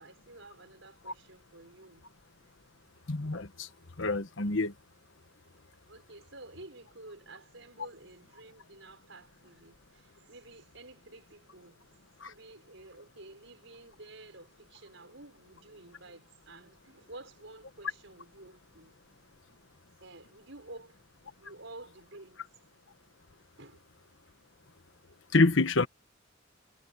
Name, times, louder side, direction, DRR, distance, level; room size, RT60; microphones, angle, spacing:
voice 1, 0.0-2.0 5.9-11.9 12.3-19.0 19.3-19.6 20.0-20.9 21.4-22.4 23.6-23.8, right 2 dB, 70° right, 6.3 m, -51 dB
voice 2, 3.1-3.7 4.0-4.7 12.2-12.3 25.3-25.9, left 3 dB, 65° left, 1.3 m, -26 dB
head